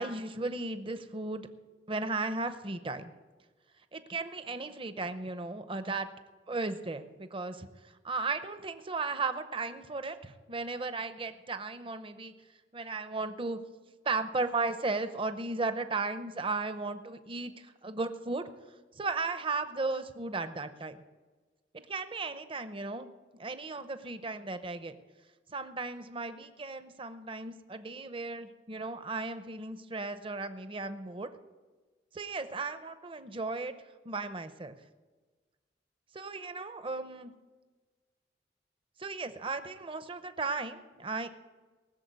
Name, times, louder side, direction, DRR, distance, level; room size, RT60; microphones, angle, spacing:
voice 1, 0.0-1.5 1.9-3.1 3.9-6.1 6.5-7.7 8.0-12.3 12.7-13.6 14.0-18.5 19.0-21.0 21.7-23.1 23.4-25.0 25.5-31.3 32.1-33.7 34.0-34.8 36.1-37.3 39.0-41.3, right 3 dB, 30° right, 10 dB, 0.7 m, -35 dB
19.5 x 7.0 x 8.2 m, 1.3 s
head